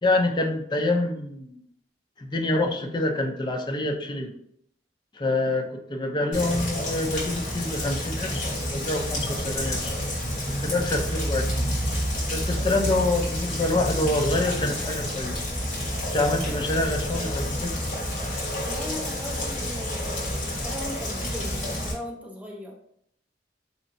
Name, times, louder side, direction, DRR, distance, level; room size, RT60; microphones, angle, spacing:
voice 1, 0.0-1.6 2.2-4.3 5.1-10.0 10.6-11.7 12.3-15.4 16.1-17.8, left 2 dB, 25° left, 3 dB, 0.4 m, -26 dB
Rain, 6.3-21.9, equal, 45° left, 1.3 m, -29 dB
voice 2, 18.6-22.7, equal, 10° right, -1 dB, 0.7 m, -38 dB
4.1 x 2.8 x 2.6 m, 0.71 s
head